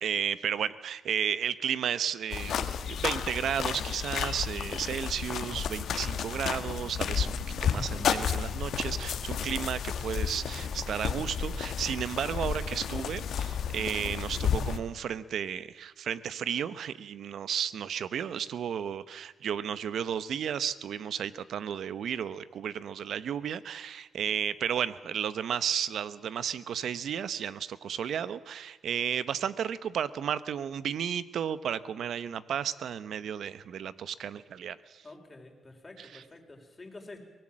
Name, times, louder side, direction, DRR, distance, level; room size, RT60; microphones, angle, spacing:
voice 1, 0.0-7.3 7.6-35.0 36.0-36.2, right 8 dB, 75° right, 16 dB, 0.9 m, -33 dB
sound 1, 2.3-14.8, left 7 dB, 80° left, 1.4 m, -32 dB
voice 2, 35.0-37.2, left 2 dB, 25° left, 2 dB, 4.6 m, -48 dB
24.0 x 18.5 x 7.5 m, 1.2 s
cardioid pair, 95°, 0 cm